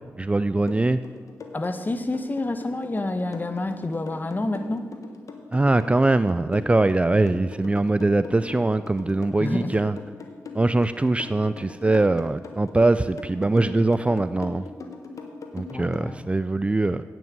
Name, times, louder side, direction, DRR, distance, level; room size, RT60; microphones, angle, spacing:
voice 1, 0.2-1.0 5.5-10.0 10.5-14.6 15.5-17.0, right 2 dB, 20° right, 12 dB, 0.3 m, -22 dB
sound 1, 0.7-16.1, left 4 dB, 65° left, 1.3 m, -40 dB
voice 2, 1.5-4.9 9.4-9.8 15.7-16.3, left 2 dB, 30° left, 9 dB, 1.0 m, -28 dB
8.9 x 6.0 x 8.1 m, 1.5 s
cardioid pair, 50°, 6 cm